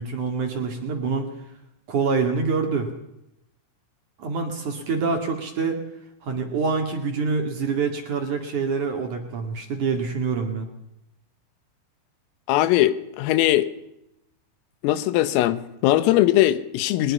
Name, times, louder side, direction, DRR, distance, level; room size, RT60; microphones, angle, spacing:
voice 1, 0.0-1.3 1.9-2.9 4.2-5.8 6.2-10.7, right 5 dB, 50° right, 2.9 m, -26 dB
voice 2, 12.5-13.7 14.8-17.1, left 14 dB, 90° left, 3.8 m, -20 dB
22.0 x 21.0 x 5.6 m
omnidirectional pair, 5.8 m